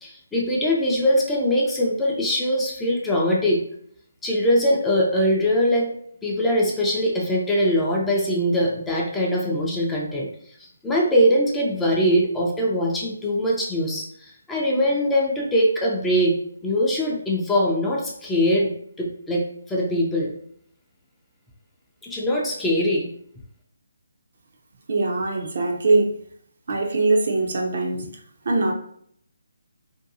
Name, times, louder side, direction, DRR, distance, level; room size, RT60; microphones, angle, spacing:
voice 1, 0.0-3.6 4.2-5.9 6.2-10.3 10.8-16.3 16.6-18.7 19.0-20.3 22.0-23.1, equal, 10° left, -3 dB, 0.4 m, -22 dB
voice 2, 24.9-26.1 26.7-28.1 28.5-28.7, right 3 dB, 55° right, 1 dB, 0.5 m, -21 dB
2.6 x 2.2 x 2.6 m, 0.64 s
figure-of-eight pair, 150°, 0 cm